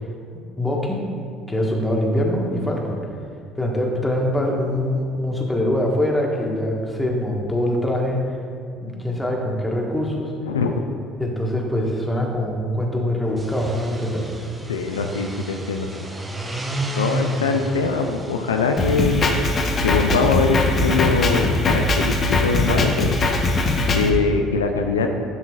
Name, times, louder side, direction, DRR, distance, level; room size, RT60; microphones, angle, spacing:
voice 1, 0.3-1.0 1.5-3.0 3.6-8.2 8.8-10.3 11.2-14.3, left 1 dB, 10° left, -1 dB, 1.4 m, -23 dB
sound 1, 13.3-19.6, right 1 dB, 15° right, 0.9 m, -31 dB
voice 2, 14.7-16.1 17.0-19.4 19.8-23.2 23.9-25.1, left 4 dB, 85° left, 4 dB, 0.4 m, -22 dB
Drum kit, 18.8-24.1, left 2 dB, 40° left, 0.9 m, -21 dB
10.5 x 5.8 x 2.4 m, 2.3 s
hypercardioid pair, 60°, 0 cm